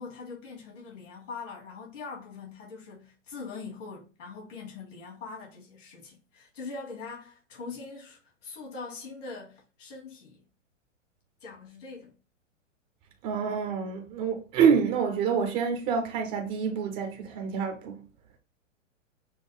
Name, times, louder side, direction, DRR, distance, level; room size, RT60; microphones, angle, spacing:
voice 1, 0.0-10.4 11.4-12.1, left 4 dB, 70° left, 2.3 m, -42 dB
voice 2, 13.2-18.0, right 6 dB, 15° right, 0.4 m, -27 dB
6.1 x 2.1 x 3.4 m
hypercardioid pair, 140°, 39 cm